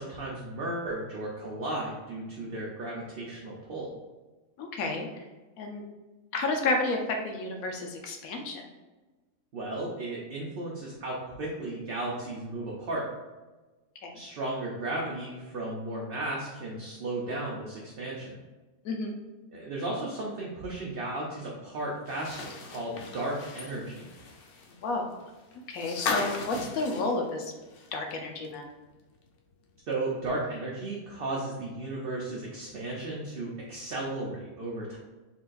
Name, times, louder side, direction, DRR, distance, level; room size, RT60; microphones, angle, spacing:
voice 1, 0.0-3.9 9.5-13.1 14.1-18.4 19.5-24.1 29.9-35.0, right 2 dB, 50° right, -3 dB, 0.7 m, -35 dB
voice 2, 4.6-5.1 5.6-5.8 6.3-7.0 7.2-8.6 14.0-14.2 18.8-19.1 24.8-25.1 25.7-27.5 27.9-28.7, left 2 dB, 75° left, 3 dB, 1.2 m, -31 dB
sound 1, 22.1-28.1 28.4-28.5 29.9-30.0, left 4 dB, 60° left, 0.6 m, -37 dB
4.2 x 3.8 x 2.5 m, 1.2 s
omnidirectional pair, 1.5 m